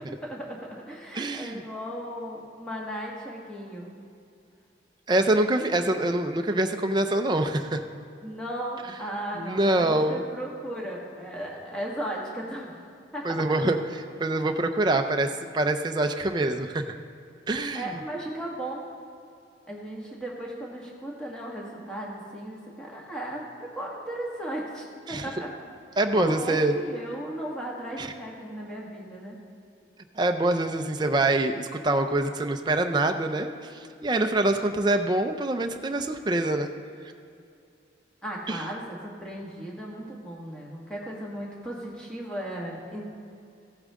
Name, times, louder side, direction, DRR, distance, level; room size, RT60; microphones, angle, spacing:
voice 1, 0.1-3.9 8.2-12.7 13.1-13.6 17.7-18.9 19.7-25.5 26.1-29.4 38.2-43.0, right 1 dB, 5° left, -4 dB, 1.7 m, -36 dB
voice 2, 1.1-1.6 5.1-7.8 9.4-10.2 13.2-13.8 14.2-16.8 17.5-18.0 25.1-25.3 26.0-26.7 28.0-28.1 30.2-33.5 34.0-36.7 38.5-38.6, right 2 dB, 25° right, 5 dB, 0.5 m, -25 dB
15.5 x 8.6 x 3.7 m, 2.4 s
head